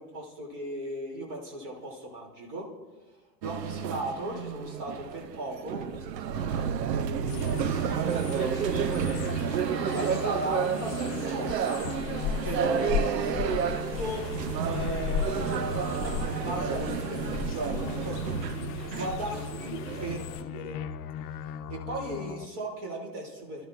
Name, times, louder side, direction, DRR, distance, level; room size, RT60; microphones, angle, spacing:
voice 1, 0.0-2.7 3.4-18.2 18.8-19.7 20.0-20.8 21.7-23.7, right 1 dB, 40° right, -2 dB, 2.8 m, -37 dB
sound 1, 3.4-20.2, right 8 dB, 90° right, 0.7 m, -31 dB
sound 2, 7.3-11.6 11.8-17.6 17.8-22.5, left 8 dB, 65° left, 0.9 m, -39 dB
sound 3, 7.3-20.4, left 7 dB, 25° left, 0.5 m, -37 dB
22.5 x 12.5 x 2.5 m, 1.2 s
hypercardioid pair, 115°, 49 cm